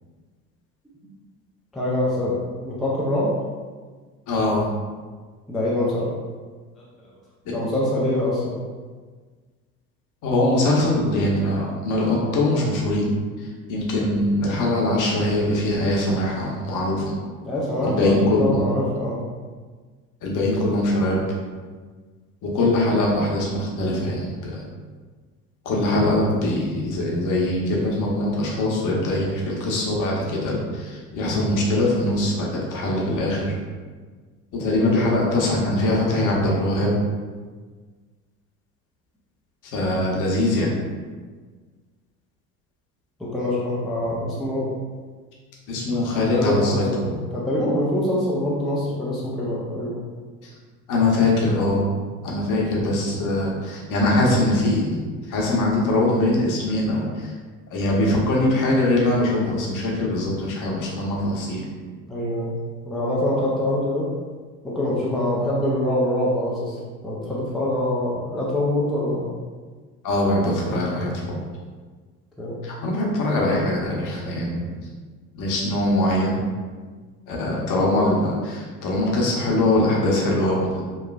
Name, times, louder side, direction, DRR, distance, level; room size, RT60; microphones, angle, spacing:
voice 1, 1.7-2.3 2.6-3.3 5.5-6.1 7.5-8.5 17.4-19.2 34.8-35.0 43.2-44.7 46.3-50.0 53.1-53.3 62.1-62.5 62.8-64.1 64.6-69.3 72.4-72.6, left 1 dB, ahead, -7 dB, 0.4 m, -24 dB
voice 2, 4.3-4.7 7.4-7.5 10.2-13.1 13.4-17.1 17.8-18.6 20.2-21.2 22.4-24.6 25.6-33.6 34.5-36.9 39.6-40.7 45.7-47.2 50.4-50.5 50.9-51.8 52.2-57.3 57.7-61.7 70.0-71.4 72.6-74.8 75.3-76.4 77.3-80.8, left 1 dB, 45° left, -3 dB, 0.8 m, -22 dB
3.0 x 2.3 x 2.3 m, 1.5 s
figure-of-eight pair, 65°, 45 cm